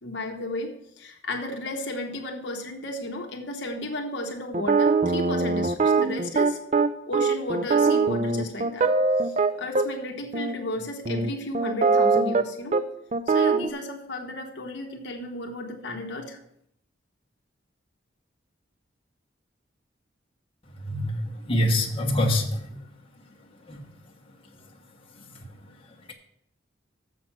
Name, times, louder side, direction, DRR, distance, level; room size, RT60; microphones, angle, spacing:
voice 1, 0.0-6.6 7.1-8.9 9.2-12.8 13.3-16.4, left 2 dB, 60° left, 2 dB, 1.1 m, -34 dB
sound 1, 4.5-9.9 10.3-10.6 11.1-12.4 12.7-12.8 13.1-13.7, right 4 dB, 35° right, 0.5 m, -22 dB
voice 2, 20.8-21.2 21.5-22.8 23.7-23.8, left 1 dB, 30° left, -1 dB, 1.2 m, -24 dB
7.3 x 6.0 x 7.4 m, 0.73 s
head